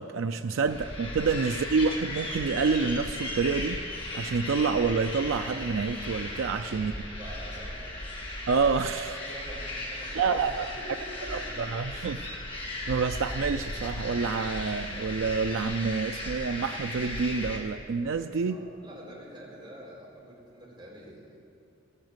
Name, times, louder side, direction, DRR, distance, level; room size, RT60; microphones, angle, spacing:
voice 1, 0.0-3.8 4.1-6.9 8.5-9.1 10.2-10.7 11.3-12.2 12.9-18.6, right 5 dB, 80° right, 7 dB, 0.4 m, -28 dB
sound 1, 0.6-17.6, left 1 dB, 25° left, 2.0 m, -36 dB
voice 2, 6.7-8.0 9.0-11.6 18.5-21.4, right 1 dB, 25° right, -6 dB, 4.0 m, -47 dB
14.5 x 9.0 x 8.0 m, 2.6 s
head